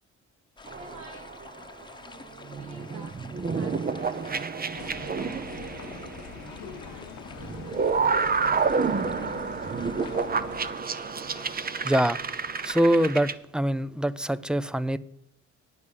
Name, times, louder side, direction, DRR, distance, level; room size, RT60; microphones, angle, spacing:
sound 1, 0.6-13.1, left 3 dB, 15° left, 1.0 m, -48 dB
sound 2, 0.7-1.8 2.4-6.8 7.3-13.3, right 5 dB, 30° right, 0.7 m, -29 dB
voice 1, 0.8-1.3 2.0-3.1 3.5-6.2 6.6-8.3, right 2 dB, 60° right, 2.4 m, -49 dB
sound 3, 4.8-10.7, left 8 dB, 70° left, 1.0 m, -44 dB
voice 2, 11.8-12.2 12.6-15.0, right 1 dB, 5° right, 0.4 m, -24 dB
9.6 x 7.3 x 6.5 m
cardioid pair, 90°, 30 cm